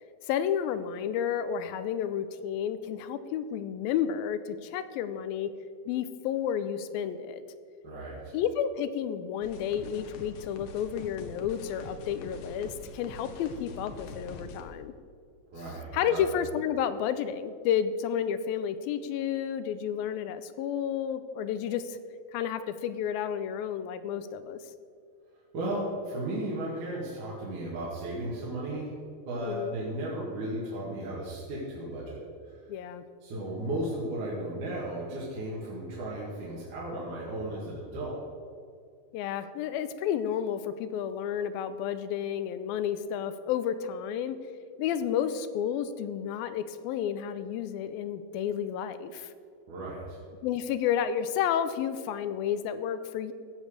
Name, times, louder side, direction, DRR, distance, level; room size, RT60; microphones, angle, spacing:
voice 1, 0.2-5.5 5.9-7.4 8.3-14.9 15.9-22.0 22.3-24.6 29.4-29.7 32.7-33.0 39.1-44.4 44.8-49.3 50.4-53.3, left 9 dB, 85° left, 12 dB, 2.4 m, -31 dB
voice 2, 7.8-8.4 15.5-16.3 25.5-28.9 29.3-32.7 33.2-38.2 49.7-50.2, right 1 dB, 60° right, -6 dB, 3.4 m, -35 dB
sound 1, 9.4-14.6, left 3 dB, 70° left, 2.4 m, -44 dB
15.5 x 7.2 x 6.6 m, 2.2 s
omnidirectional pair, 4.3 m